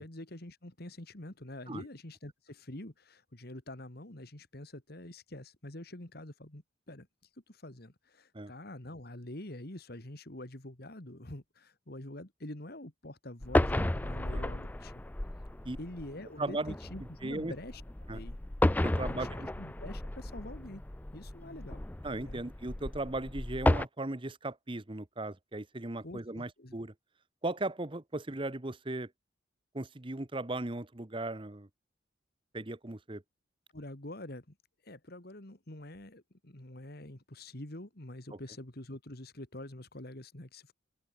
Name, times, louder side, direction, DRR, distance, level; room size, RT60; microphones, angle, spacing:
voice 1, 0.0-7.1 7.5-15.0 15.8-17.8 18.1-18.4 18.8-19.3 19.6-20.8 21.1-21.8 22.2-22.4 26.0-26.7 33.7-34.5 34.8-40.7, left 1 dB, 50° left, 2.4 m, -46 dB
sound 1, 13.4-23.8, left 1 dB, 10° left, 0.3 m, -33 dB
voice 2, 16.4-16.8 17.2-17.5 18.1-18.2 18.8-19.5 22.0-26.9 27.4-29.1 29.7-31.7 32.5-33.2, right 2 dB, 25° right, 1.0 m, -37 dB
open air
head